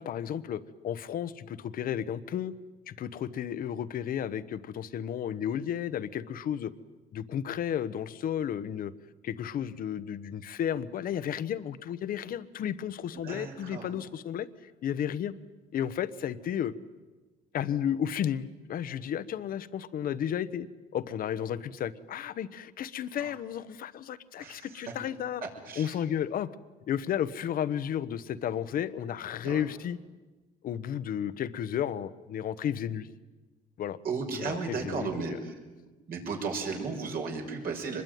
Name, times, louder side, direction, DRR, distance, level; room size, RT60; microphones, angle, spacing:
voice 1, 0.0-2.5 2.9-6.7 7.1-8.9 9.2-15.3 15.7-16.7 17.5-20.7 20.9-25.4 25.7-26.5 26.9-30.0 30.6-33.1 33.8-34.0 34.3-35.4, left 9 dB, 55° left, 14 dB, 1.1 m, -33 dB
voice 2, 13.2-13.9 23.2-23.3 24.4-24.9 25.7-25.9 29.4-29.6 34.0-35.5 36.1-38.0, right 4 dB, 60° right, 1 dB, 6.1 m, -35 dB
25.0 x 21.5 x 9.4 m, 1.2 s
cardioid pair, 110°, 17 cm